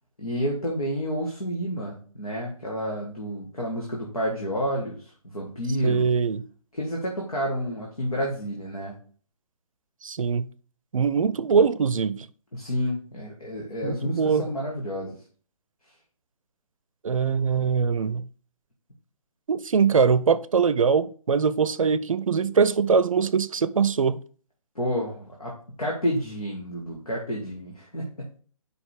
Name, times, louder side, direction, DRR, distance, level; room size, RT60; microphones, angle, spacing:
voice 1, 0.2-6.1 6.7-9.0 12.5-15.2 24.8-25.5 25.8-28.3, equal, 80° left, 1.8 m, -30 dB
voice 2, 5.8-6.4 10.0-10.5 10.9-12.3 13.8-14.4 17.0-18.2 19.5-24.2, right 6 dB, 65° right, 0.5 m, -22 dB
5.1 x 5.0 x 4.9 m
figure-of-eight pair, 140°, 18 cm